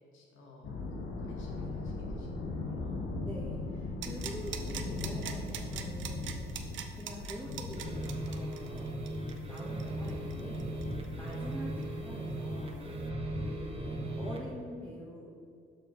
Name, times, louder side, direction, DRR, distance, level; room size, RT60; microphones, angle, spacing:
voice 1, 0.1-3.2, left 1 dB, 85° left, -1 dB, 1.4 m, -53 dB
sound 1, 0.6-14.1, left 3 dB, 65° left, 1.0 m, -40 dB
voice 2, 3.2-6.4 6.9-8.9 9.4-12.9 13.4-15.4, equal, 10° left, -7 dB, 1.2 m, -45 dB
sound 2, 4.0-11.5 11.8-11.9, right 9 dB, 70° right, 0.6 m, -43 dB
sound 3, 7.7-14.5, right 1 dB, 30° right, 1.2 m, -38 dB
6.8 x 5.8 x 3.1 m, 2.4 s
cardioid pair, 90°, 20 cm